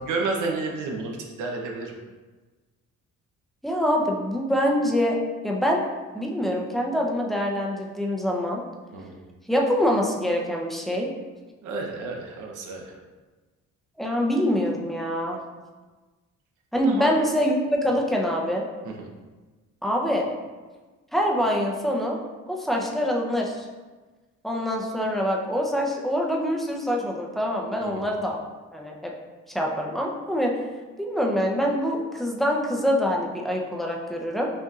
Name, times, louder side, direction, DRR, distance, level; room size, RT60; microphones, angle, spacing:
voice 1, 0.0-2.0 8.9-9.1 11.6-12.9 16.8-17.1 18.8-19.1 27.8-28.1, right 3 dB, 80° right, 0 dB, 0.7 m, -31 dB
voice 2, 3.6-5.2 5.4-5.8 6.1-8.6 9.5-11.1 14.0-15.4 16.7-18.7 19.8-20.3 21.1-22.2 22.5-23.7 24.4-28.4 28.7-29.1 29.5-30.5 31.0-34.5, equal, ahead, -1 dB, 0.6 m, -25 dB
5.3 x 2.7 x 2.4 m, 1.3 s
cardioid pair, 90°, 30 cm